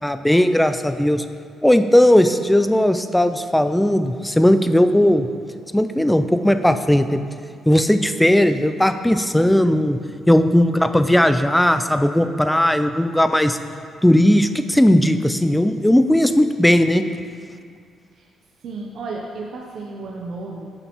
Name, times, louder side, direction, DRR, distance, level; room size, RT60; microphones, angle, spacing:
voice 1, 0.0-1.2 1.6-5.3 5.7-7.2 7.7-10.0 10.3-13.6 14.0-17.1, left 1 dB, 5° left, 9 dB, 0.3 m, -17 dB
voice 2, 18.6-20.7, right 3 dB, 65° right, -1 dB, 0.6 m, -33 dB
8.8 x 6.2 x 3.0 m, 2.2 s
cardioid pair, 90°, 0 cm